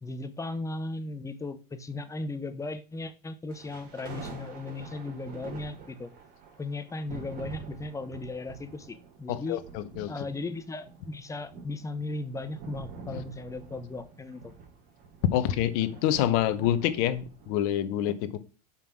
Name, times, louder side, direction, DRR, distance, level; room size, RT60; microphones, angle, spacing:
voice 1, 0.0-6.1 6.6-9.6 10.1-14.5, left 3 dB, 15° left, 11 dB, 1.0 m, -37 dB
sound 1, 3.5-17.8, right 5 dB, 55° right, 3.3 m, -46 dB
voice 2, 9.3-10.1 13.1-13.2 15.3-18.4, left 11 dB, 65° left, 13 dB, 1.0 m, -27 dB
5.8 x 5.4 x 6.1 m, 0.34 s
hypercardioid pair, 100°, 20 cm